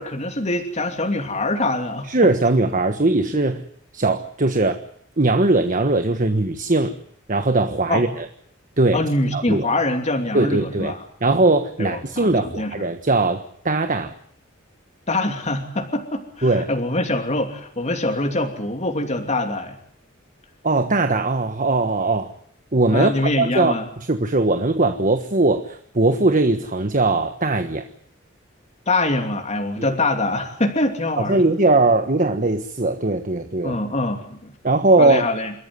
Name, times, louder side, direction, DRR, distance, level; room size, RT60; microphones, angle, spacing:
voice 1, 0.0-2.1 7.9-8.0 8.9-11.0 11.8-12.7 15.1-19.8 22.9-23.8 28.9-31.4 33.6-34.5 35.0-35.5, left 2 dB, 35° left, 4 dB, 2.9 m, -24 dB
voice 2, 2.0-3.6 3.9-4.8 5.2-6.9 7.3-8.3 8.8-9.0 9.3-9.7 10.3-10.9 11.2-14.1 16.4-16.7 20.6-22.3 22.7-27.8 29.8-29.9 31.2-33.8 34.6-35.3, right 2 dB, 40° right, 7 dB, 1.4 m, -20 dB
28.0 x 14.0 x 9.6 m, 0.65 s
head